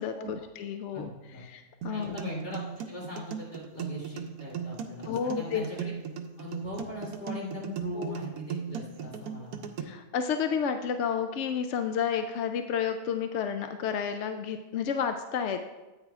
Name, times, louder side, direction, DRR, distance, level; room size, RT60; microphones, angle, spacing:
voice 1, 0.0-1.1 1.5-2.1 5.0-5.6 7.9-8.1 9.8-15.6, left 7 dB, 65° left, 7 dB, 0.7 m, -31 dB
voice 2, 0.9-1.4 1.9-2.6 2.9-5.9 6.4-9.9, left 1 dB, 50° left, -5 dB, 3.6 m, -40 dB
sound 1, 1.8-9.8, right 7 dB, 85° right, 1.2 m, -37 dB
13.5 x 8.9 x 2.4 m, 1.1 s
omnidirectional pair, 1.6 m